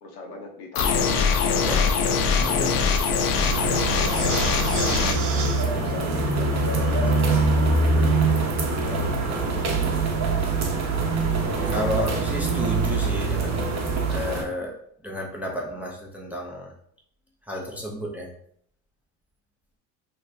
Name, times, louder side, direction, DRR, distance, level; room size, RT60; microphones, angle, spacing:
voice 1, 0.0-1.0 2.4-3.5 4.8-5.3 5.6-9.9, left 3 dB, 85° left, 2 dB, 0.9 m, -39 dB
sound 1, 0.8-5.2, left 5 dB, 60° left, 0.6 m, -22 dB
voice 2, 1.5-2.0 2.3-2.7 10.8-11.0 11.7-13.7 14.1-14.7 15.0-16.7 17.5-18.3, equal, 5° right, -1 dB, 0.5 m, -31 dB
sound 2, 3.4-14.4, right 3 dB, 35° right, 0.8 m, -24 dB
sound 3, 4.0-9.1, right 5 dB, 75° right, 0.8 m, -37 dB
2.7 x 2.2 x 3.3 m, 0.65 s
hypercardioid pair, 85°, 45 cm